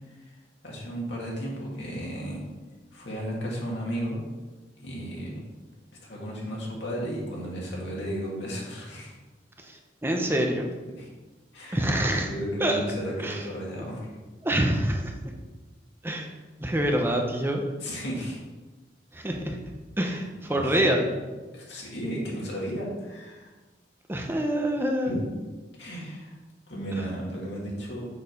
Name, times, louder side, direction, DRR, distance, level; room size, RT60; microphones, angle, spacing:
voice 1, 0.6-2.4 2.9-4.2 4.8-5.4 6.0-9.1 11.0-11.1 11.5-11.9 12.2-14.1 17.8-18.4 20.2-20.7 21.0-21.2 21.5-23.5 25.0-25.2 25.8-26.4 26.7-28.1, equal, 80° left, -4 dB, 2.3 m, -34 dB
voice 2, 9.6-10.7 11.7-12.3 12.6-12.8 13.2-13.4 14.4-15.3 16.0-16.3 16.6-17.6 19.1-19.6 20.0-21.0 24.1-25.2, right 1 dB, 15° right, 2 dB, 0.7 m, -26 dB
6.5 x 4.7 x 5.3 m, 1.2 s
head